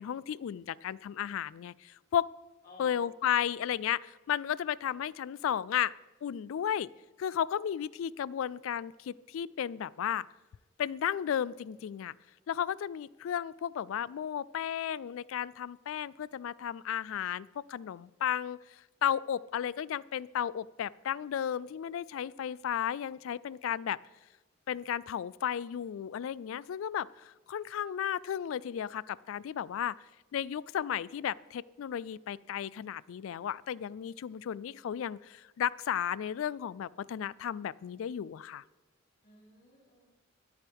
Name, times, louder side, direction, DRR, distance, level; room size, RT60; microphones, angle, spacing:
voice 1, 0.0-2.3 2.8-5.9 6.2-6.9 7.2-10.3 10.8-12.1 12.5-18.6 19.0-24.0 24.7-30.0 30.3-38.6, left 9 dB, 80° left, 21 dB, 0.3 m, -34 dB
voice 2, 2.6-3.8 39.2-40.2, left 2 dB, 45° left, -4 dB, 3.6 m, -57 dB
23.5 x 9.1 x 3.5 m, 1.2 s
head